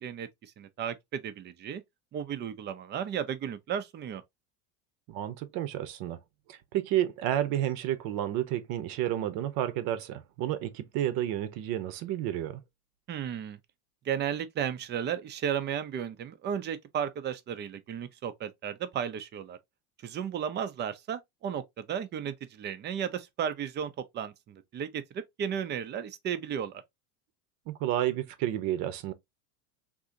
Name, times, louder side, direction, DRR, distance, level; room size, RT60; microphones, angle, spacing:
voice 1, 0.0-1.8 2.1-4.2 13.1-13.6 14.0-19.6 20.0-26.7, right 8 dB, 25° right, 0.5 m, -34 dB
voice 2, 5.1-6.2 6.5-12.6 27.7-29.1, right 12 dB, 50° right, 0.8 m, -31 dB
3.8 x 2.7 x 2.6 m
supercardioid pair, 125°, 44 cm